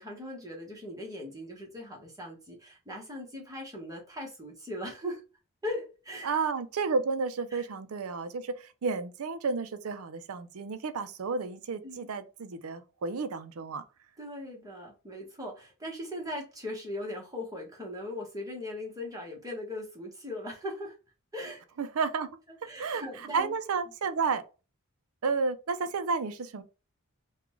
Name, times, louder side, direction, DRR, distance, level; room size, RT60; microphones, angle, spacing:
voice 1, 0.0-5.2 5.6-6.3 7.5-7.6 11.8-12.1 14.2-20.9 21.3-21.6 22.7-23.5, left 1 dB, 15° right, 1.2 m, -39 dB
voice 2, 6.2-13.8 21.8-22.3 22.8-24.4 25.2-26.6, right 4 dB, 75° right, 0.5 m, -31 dB
3.7 x 2.3 x 3.0 m
head